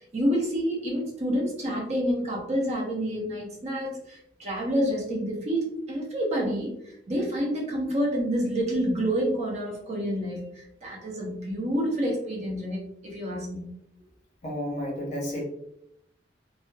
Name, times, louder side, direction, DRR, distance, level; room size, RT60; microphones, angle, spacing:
voice 1, 0.1-13.6, equal, 40° right, -2 dB, 0.6 m, -28 dB
voice 2, 14.4-15.4, equal, 40° left, -3 dB, 0.8 m, -31 dB
2.8 x 2.0 x 2.2 m, 0.76 s
head